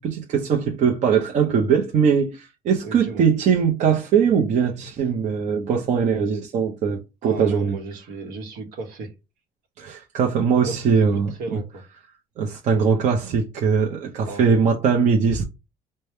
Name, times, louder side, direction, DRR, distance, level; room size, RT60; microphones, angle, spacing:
voice 1, 0.0-7.8 9.8-11.6 12.4-15.4, right 6 dB, 55° right, 0.7 m, -21 dB
voice 2, 2.8-3.2 7.2-9.1 10.6-11.8 14.2-14.7, right 3 dB, 75° right, 1.0 m, -34 dB
3.3 x 2.2 x 4.2 m
cardioid pair, 115°, 15 cm